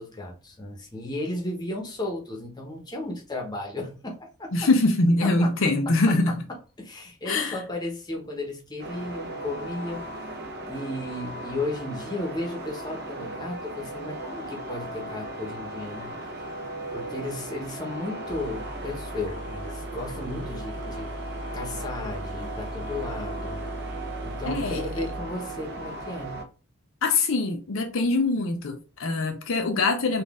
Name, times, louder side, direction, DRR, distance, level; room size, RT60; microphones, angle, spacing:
voice 1, 0.0-4.5 5.2-5.5 6.8-10.0 10.7-16.1 16.9-21.1 21.5-23.6 24.2-26.4, left 2 dB, 20° left, 0.9 m, -34 dB
voice 2, 4.5-6.4 7.3-7.6 24.5-24.9 27.0-30.2, left 2 dB, 60° left, 0.5 m, -23 dB
sound 1, 8.8-26.4, right 2 dB, 45° right, 0.8 m, -37 dB
sound 2, 18.0-18.1 18.3-26.1, equal, 85° left, 0.9 m, -39 dB
4.0 x 2.5 x 3.6 m
head